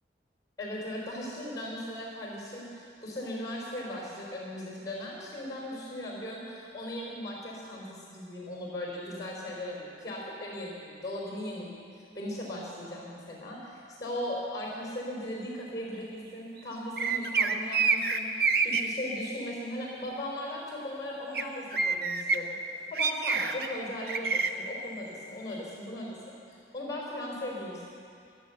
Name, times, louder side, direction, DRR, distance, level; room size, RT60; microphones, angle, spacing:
voice 1, 0.6-11.9 12.2-22.5 22.9-26.2 26.5-27.9, left 1 dB, 20° left, -3 dB, 3.6 m, -38 dB
sound 1, 17.0-18.8 21.3-21.4 21.7-22.4 23.0-23.7 24.1-24.5, right 5 dB, 55° right, 0.7 m, -26 dB
14.5 x 11.5 x 8.0 m, 2.5 s
head